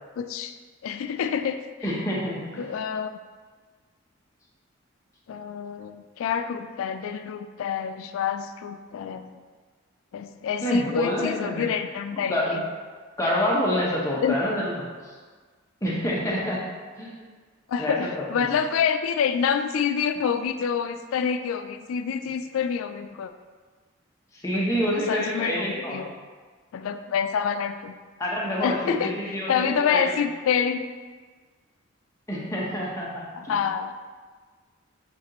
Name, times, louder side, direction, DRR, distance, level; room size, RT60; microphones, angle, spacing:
voice 1, 0.2-0.6 0.8-1.6 2.6-3.1 5.3-9.3 10.1-12.6 14.2-14.4 17.7-23.3 24.5-26.1 26.7-27.9 28.6-30.8 33.3-34.0, left 7 dB, 80° left, 10 dB, 0.3 m, -27 dB
voice 2, 1.8-2.7 10.6-11.7 12.1-12.6 13.2-14.7 15.0-15.1 15.8-16.6 17.0-17.2 17.8-18.5 24.3-26.0 28.2-30.0 32.3-33.6, equal, 15° left, -5 dB, 0.8 m, -27 dB
7.2 x 2.5 x 2.9 m, 1.5 s
head